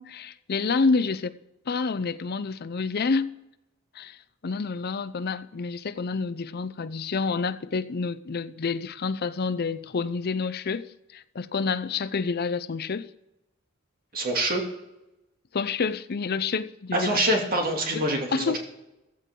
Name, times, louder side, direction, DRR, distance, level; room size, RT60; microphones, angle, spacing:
voice 1, 0.0-1.3 1.7-3.3 3.9-4.2 4.4-13.1 15.5-17.2 17.9-18.0 18.3-18.6, left 4 dB, 50° left, 0.5 m, -28 dB
voice 2, 14.1-14.6 16.9-18.6, right 1 dB, 45° right, 2.7 m, -25 dB
15.5 x 15.0 x 3.8 m
head